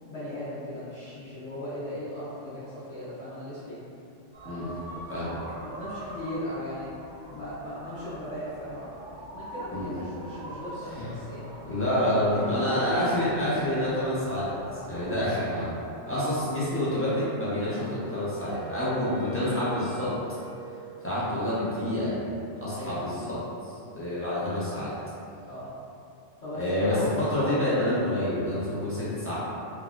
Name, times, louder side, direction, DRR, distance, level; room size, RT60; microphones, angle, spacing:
voice 1, 0.1-3.8 5.6-6.9 7.3-11.4 12.2-13.2 15.3-15.7 16.0-16.3 19.0-19.2 22.7-23.0 25.5-25.7 26.4-27.5, left 1 dB, 75° left, -13 dB, 1.2 m, -38 dB
sound 1, 4.3-15.2, right 1 dB, 75° right, 1.0 m, -44 dB
voice 2, 11.6-15.7 16.1-20.1 21.0-22.2 22.6-23.4 24.0-24.9 26.6-29.3, left 1 dB, 15° left, -11 dB, 0.5 m, -27 dB
Wind instrument woodwind instrument, 17.6-21.5, right 8 dB, 55° left, 1.1 m, -43 dB
3.6 x 2.0 x 2.4 m, 2.6 s
omnidirectional pair, 1.2 m